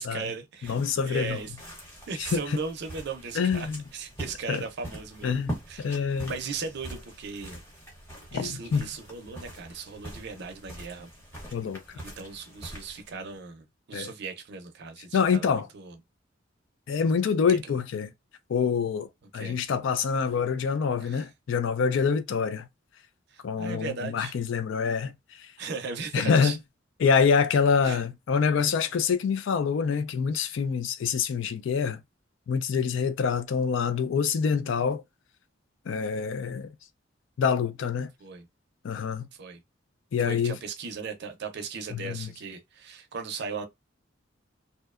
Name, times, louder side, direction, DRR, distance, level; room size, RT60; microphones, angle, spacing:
voice 1, 0.0-1.5 2.1-7.6 8.3-11.1 11.9-16.0 17.5-17.7 19.3-19.6 21.0-21.2 23.3-24.3 25.6-26.6 27.8-28.0 38.2-38.5 39.3-39.6 40.2-43.7, right 5 dB, 60° right, 0.5 m, -37 dB
voice 2, 0.6-1.4 2.2-2.6 3.3-3.8 4.5-4.6 5.2-5.5 5.8-6.3 8.3-8.9 11.5-11.8 13.9-14.1 15.1-15.7 16.9-18.1 18.5-19.1 19.3-22.7 23.4-25.5 26.1-26.5 27.0-32.0 32.5-35.0 35.9-36.7 37.4-38.1 38.8-39.3 40.1-40.6 41.9-42.3, left 6 dB, 70° left, 0.3 m, -26 dB
sound 1, 0.6-13.4, right 1 dB, 10° left, 1.0 m, -43 dB
2.7 x 2.1 x 2.3 m
head